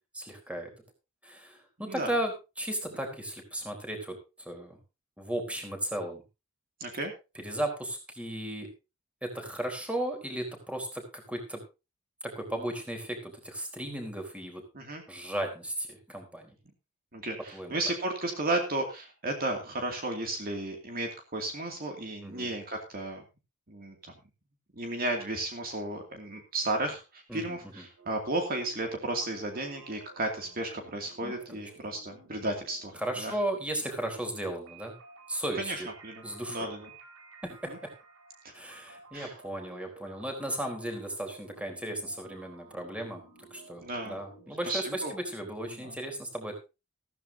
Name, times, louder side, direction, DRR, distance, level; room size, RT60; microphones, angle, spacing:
voice 1, 0.1-0.7 1.2-4.8 5.2-6.2 7.4-8.7 9.2-11.6 12.2-14.6 15.1-16.6 17.5-17.8 22.2-22.5 27.3-27.8 31.2-31.6 33.0-34.9 35.3-35.9 36.2-36.7 37.6-37.7 38.5-43.2 43.5-46.6, right 1 dB, 5° right, 3 dB, 3.9 m, -35 dB
voice 2, 6.8-7.1 14.7-15.0 17.1-23.2 23.7-24.1 24.7-33.4 35.5-36.9 37.7-37.8 38.4-38.5 39.1-39.3 43.8-44.2 44.6-45.1 45.8-46.0, right 2 dB, 45° right, 3 dB, 2.6 m, -34 dB
sound 1, 28.0-45.1, right 4 dB, 90° right, 5.1 m, -54 dB
15.0 x 14.0 x 2.8 m, 0.28 s
head